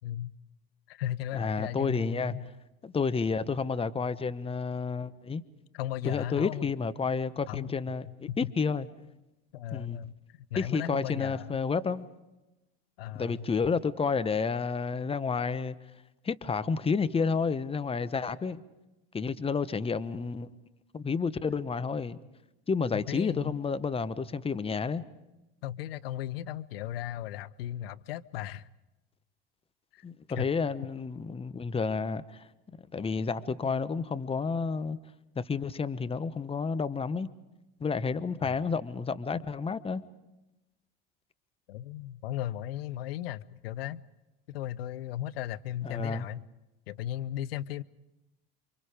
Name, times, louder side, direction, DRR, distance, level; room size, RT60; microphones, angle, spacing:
voice 1, 0.0-0.3 0.9-2.5 5.7-6.7 7.5-7.7 8.1-8.5 9.5-11.6 13.0-13.4 22.9-23.6 25.6-28.7 29.9-30.0 30.4-30.5 38.4-38.7 41.7-44.0 44.5-46.4 46.9-47.8, left 12 dB, 80° left, 0.7 m, -36 dB
voice 2, 1.3-2.4 2.8-5.4 6.0-8.9 9.7-10.0 10.6-12.1 13.1-15.8 16.2-18.6 19.1-20.5 20.9-22.2 22.7-25.1 30.0-32.4 32.9-35.0 35.4-37.3 37.8-40.0 45.8-46.3, left 5 dB, 20° left, 1.1 m, -30 dB
28.5 x 24.5 x 5.0 m
hypercardioid pair, 80°, 29 cm